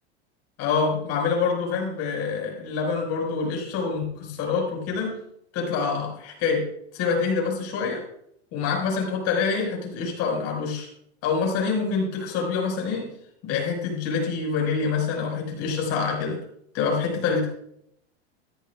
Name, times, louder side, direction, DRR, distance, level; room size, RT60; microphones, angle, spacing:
voice 1, 0.6-5.1 5.5-6.6 6.9-8.0 8.5-10.9 11.2-13.1 13.4-16.4 16.7-17.4, left 5 dB, 50° left, 1 dB, 5.9 m, -26 dB
14.5 x 14.0 x 2.5 m, 0.72 s
hypercardioid pair, 105°, 33 cm